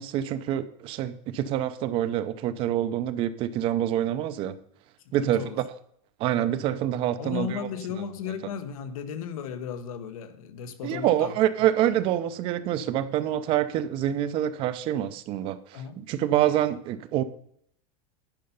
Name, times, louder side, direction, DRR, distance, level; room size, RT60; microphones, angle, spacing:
voice 1, 0.0-4.5 5.1-5.4 6.2-7.6 10.8-17.2, right 11 dB, 30° right, 0.5 m, -26 dB
voice 2, 5.0-5.6 7.2-11.4 15.7-16.0, left 8 dB, 85° left, 1.2 m, -35 dB
10.5 x 5.6 x 5.4 m
supercardioid pair, 170°, 18 cm